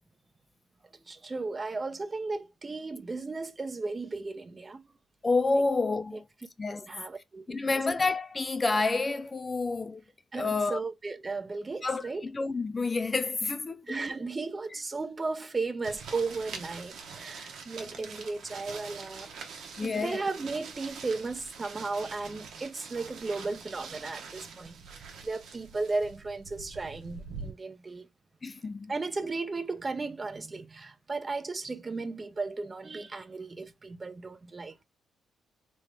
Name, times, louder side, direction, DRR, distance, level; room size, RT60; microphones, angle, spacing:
voice 1, 0.9-4.8 6.1-6.2 6.8-7.8 10.3-12.3 13.8-19.5 19.8-28.1 28.9-34.8, right 3 dB, 30° right, 0.6 m, -35 dB
voice 2, 5.2-6.2 6.6-6.9 7.5-10.0 10.4-10.8 11.8-13.8 19.8-20.2 28.4-28.9, left 3 dB, 30° left, 0.3 m, -29 dB
sound 1, 15.8-27.5, right 5 dB, 75° right, 0.8 m, -45 dB
3.1 x 2.5 x 3.3 m
supercardioid pair, 70°, 0 cm